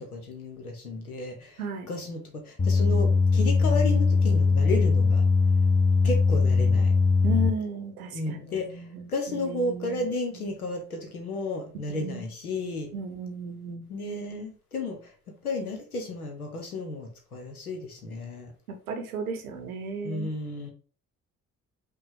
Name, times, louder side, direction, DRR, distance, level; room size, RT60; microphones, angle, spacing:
voice 1, 0.0-1.6 1.9-5.2 6.0-6.9 8.1-12.9 13.9-15.1 15.4-18.5 20.0-20.7, left 2 dB, 85° left, 4 dB, 0.8 m, -33 dB
voice 2, 1.6-1.9 7.2-10.1 10.3-10.4 11.9-12.3 12.9-13.9 18.7-20.3, right 2 dB, 80° right, 5 dB, 0.8 m, -35 dB
sound 1, 2.6-7.5, left 4 dB, 15° left, 0.8 m, -21 dB
5.3 x 2.1 x 4.5 m, 0.38 s
figure-of-eight pair, 40°, 43 cm